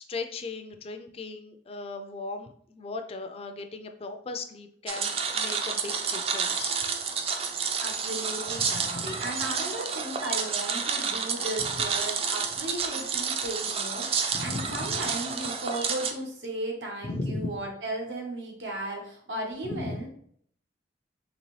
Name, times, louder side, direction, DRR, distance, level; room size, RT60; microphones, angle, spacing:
voice 1, 0.0-6.8 8.6-9.1 11.6-11.7 14.3-15.0 17.0-17.6 19.6-20.1, left 3 dB, 35° left, 7 dB, 0.4 m, -37 dB
sound 1, 4.9-16.1, right 5 dB, 35° right, 0.4 m, -30 dB
voice 2, 7.8-20.1, right 1 dB, 85° right, 0 dB, 1.2 m, -36 dB
3.9 x 3.0 x 3.1 m, 0.62 s
head